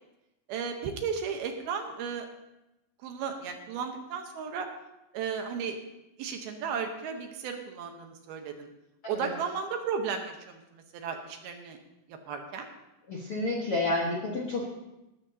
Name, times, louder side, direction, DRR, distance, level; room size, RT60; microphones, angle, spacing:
voice 1, 0.5-2.3 3.0-4.7 5.1-5.8 6.2-8.7 9.1-11.8 12.1-12.7, right 6 dB, 70° right, 5 dB, 2.7 m, -34 dB
voice 2, 13.1-14.7, left 2 dB, 65° left, -2 dB, 1.4 m, -30 dB
19.5 x 12.5 x 2.8 m, 0.94 s
omnidirectional pair, 4.9 m